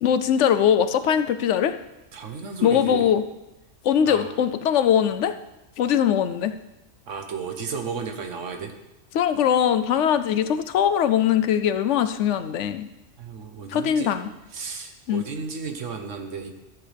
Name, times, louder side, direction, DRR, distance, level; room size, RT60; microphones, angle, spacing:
voice 1, 0.0-1.8 2.6-3.2 3.8-5.3 5.8-6.5 9.1-12.9 13.7-14.3 15.1-15.2, left 9 dB, 75° left, 11 dB, 0.9 m, -21 dB
voice 2, 2.1-3.1 4.0-4.4 7.1-8.7 13.2-14.2 14.5-16.5, right 5 dB, 80° right, 5 dB, 1.4 m, -33 dB
13.0 x 7.9 x 3.4 m, 0.99 s
omnidirectional pair, 1.3 m